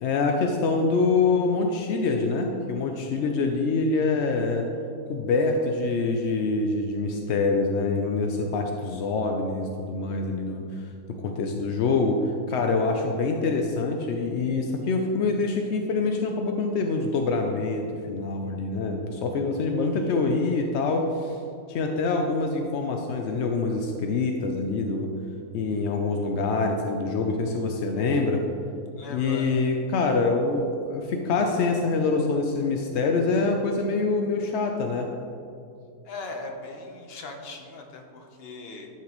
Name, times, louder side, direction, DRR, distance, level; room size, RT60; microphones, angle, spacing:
voice 1, 0.0-4.7 5.1-10.7 11.1-12.2 12.5-21.4 21.7-25.1 25.5-28.4 29.1-35.1, left 3 dB, 70° left, 3 dB, 0.6 m, -25 dB
voice 2, 19.8-20.1 29.0-29.6 36.0-38.9, left 3 dB, 45° left, 3 dB, 0.9 m, -39 dB
11.5 x 5.9 x 3.0 m, 2.6 s
omnidirectional pair, 1.7 m